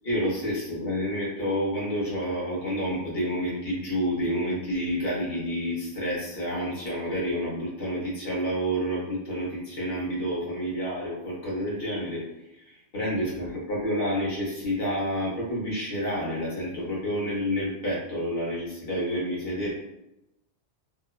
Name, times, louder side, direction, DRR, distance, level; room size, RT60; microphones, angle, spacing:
voice 1, 0.0-12.2 12.7-19.7, equal, 65° left, -5 dB, 1.2 m, -29 dB
2.8 x 2.1 x 2.3 m, 0.87 s
omnidirectional pair, 1.1 m